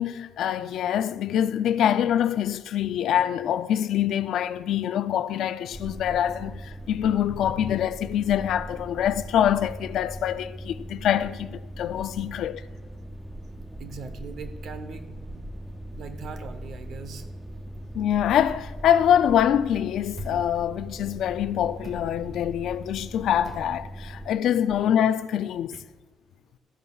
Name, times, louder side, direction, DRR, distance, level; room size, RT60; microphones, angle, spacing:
voice 1, 0.0-12.6 17.9-25.7, left 10 dB, 60° left, 0.3 m, -25 dB
sound 1, 5.7-24.3, right 1 dB, 5° right, 0.4 m, -40 dB
voice 2, 13.8-15.4 16.0-17.3 24.2-24.3 25.7-25.8 26.2-26.4, right 5 dB, 55° right, 0.9 m, -41 dB
sound 2, 20.2-20.5 21.8-22.1 23.4-23.8, right 1 dB, 25° right, 1.4 m, -40 dB
13.5 x 10.5 x 2.4 m
cardioid pair, 170°, 0 cm